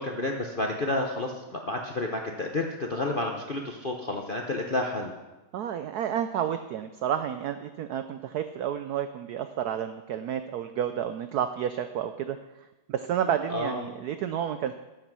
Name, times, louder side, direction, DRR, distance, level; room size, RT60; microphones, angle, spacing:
voice 1, 0.0-5.1 13.5-13.8, left 2 dB, 55° left, 1 dB, 0.6 m, -30 dB
voice 2, 5.5-12.4 12.9-14.7, right 9 dB, 85° right, 9 dB, 0.8 m, -30 dB
13.5 x 7.3 x 6.0 m, 1.1 s
omnidirectional pair, 2.3 m